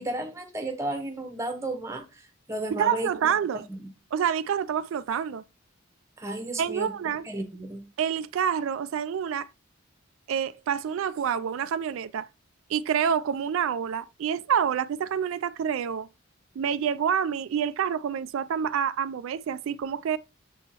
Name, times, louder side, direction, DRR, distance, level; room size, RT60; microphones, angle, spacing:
voice 1, 0.0-3.1 3.8-3.9 6.2-6.9 7.2-7.8, right 2 dB, 15° right, 1.0 m, -33 dB
voice 2, 2.7-3.6 4.1-5.4 6.6-7.3 8.0-9.5 10.3-12.3 12.7-16.1 16.6-20.2, right 8 dB, 70° right, 0.3 m, -27 dB
6.8 x 3.6 x 4.3 m
head